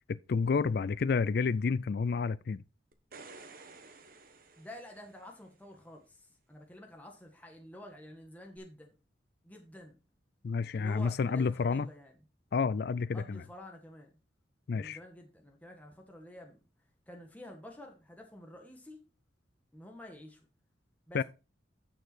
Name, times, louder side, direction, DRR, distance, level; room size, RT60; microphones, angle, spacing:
voice 1, 0.1-2.6 10.4-11.9 12.5-13.4 14.7-15.0 21.1-21.2, left 5 dB, 55° left, 0.4 m, -30 dB
sound 1, 2.9-5.5 8.6-8.7, right 3 dB, 50° right, 1.1 m, -53 dB
voice 2, 4.6-9.0 9.4-10.0 10.7-12.1 13.1-14.1 14.7-16.6 17.1-19.0 19.7-20.4 21.1-21.2, left 1 dB, 10° left, 1.5 m, -50 dB
9.0 x 6.7 x 4.4 m
head